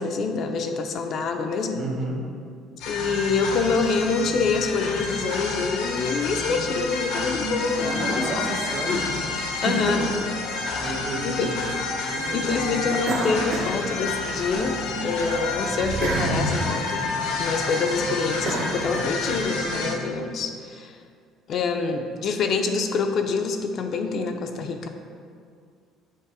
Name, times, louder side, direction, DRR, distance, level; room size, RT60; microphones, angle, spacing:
voice 1, 0.0-1.8 2.9-8.5 8.8-9.0 9.6-10.1 10.8-11.6 12.3-17.1 17.4-21.0 21.5-24.9, left 4 dB, 50° left, 5 dB, 0.4 m, -26 dB
voice 2, 1.7-2.2 7.8-9.1 9.6-10.0 10.7-11.7 12.1-12.8, right 2 dB, 45° right, -1 dB, 1.3 m, -31 dB
sound 1, 2.8-19.9, left 3 dB, 90° left, 0.8 m, -29 dB
sound 2, 13.0-14.6 15.0-19.6, right 2 dB, 60° right, 0.9 m, -30 dB
7.3 x 2.9 x 4.7 m, 2.2 s
cardioid pair, 140°, 0 cm